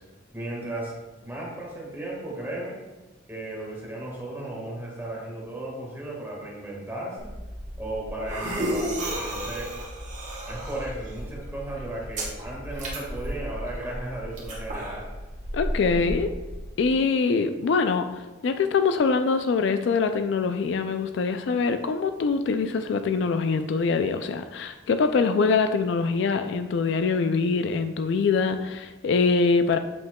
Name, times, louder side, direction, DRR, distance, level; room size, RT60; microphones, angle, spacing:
voice 1, 0.3-2.8 3.3-7.3 7.8-9.7 10.5-15.1 15.8-16.0, right 1 dB, 10° right, -4 dB, 1.5 m, -35 dB
sound 1, 7.2-16.7, right 1 dB, 40° right, 1.5 m, -33 dB
voice 2, 15.5-16.3 16.8-18.1 18.4-29.8, left 4 dB, 65° left, 9 dB, 0.3 m, -24 dB
7.9 x 5.6 x 2.2 m, 1.1 s
head